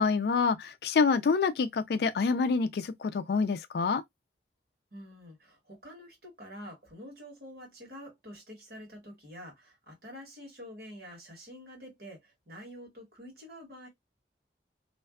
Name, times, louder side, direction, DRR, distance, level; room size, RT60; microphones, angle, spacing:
voice 1, 0.0-4.0, left 5 dB, 60° left, 0.3 m, -27 dB
voice 2, 4.9-13.9, equal, 55° right, 1.4 m, -47 dB
2.5 x 2.2 x 2.3 m
head